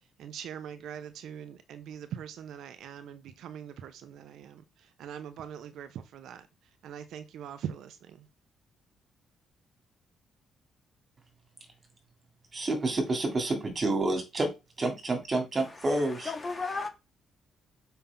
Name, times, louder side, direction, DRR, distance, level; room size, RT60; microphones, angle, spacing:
voice 1, 0.2-6.5 6.8-8.3, right 9 dB, 75° right, 0.9 m, -42 dB
voice 2, 12.5-14.5 14.8-16.3, right 2 dB, 35° right, 3.4 m, -29 dB
voice 3, 15.7-16.9, left 4 dB, 30° left, 2.4 m, -35 dB
7.0 x 5.7 x 3.9 m
cardioid pair, 90°, 0 cm